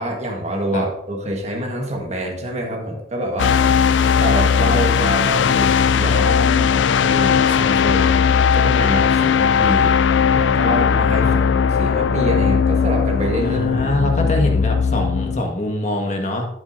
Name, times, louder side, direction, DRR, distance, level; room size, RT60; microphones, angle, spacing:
voice 1, 0.0-3.7 4.2-9.9 10.4-11.3 11.8-13.8, right 1 dB, 35° right, 1 dB, 1.5 m, -26 dB
sound 1, 3.4-15.4, left 6 dB, 70° left, 0.4 m, -17 dB
voice 2, 13.4-16.5, left 1 dB, 40° left, 2 dB, 1.6 m, -23 dB
12.0 x 7.2 x 2.6 m, 0.80 s
head